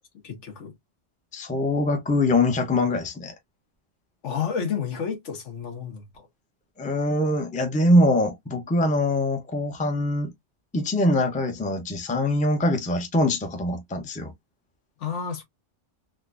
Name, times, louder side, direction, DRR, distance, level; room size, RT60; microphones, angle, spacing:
voice 1, 0.2-0.7 4.2-6.3 15.0-15.4, left 7 dB, 75° left, 1.4 m, -31 dB
voice 2, 1.3-3.3 6.8-10.3 10.7-14.3, left 1 dB, 10° left, 0.5 m, -23 dB
3.8 x 2.3 x 2.4 m
omnidirectional pair, 1.3 m